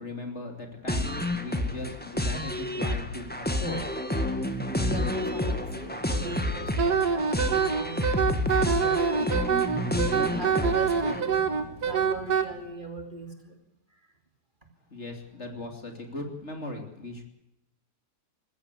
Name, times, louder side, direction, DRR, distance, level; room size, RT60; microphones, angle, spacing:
voice 1, 0.0-3.9 14.9-17.2, left 2 dB, 40° left, 3 dB, 3.2 m, -38 dB
sound 1, 0.9-11.2, left 1 dB, 5° left, 1.8 m, -29 dB
voice 2, 4.7-11.4 11.8-13.6 13.9-14.0, right 2 dB, 30° right, 4 dB, 2.7 m, -41 dB
Wind instrument woodwind instrument, 6.8-12.4, right 7 dB, 65° right, 2.1 m, -25 dB
sound 2, 7.0-12.7, equal, 65° left, 6.4 m, -48 dB
20.5 x 15.5 x 8.3 m, 0.88 s
omnidirectional pair, 1.8 m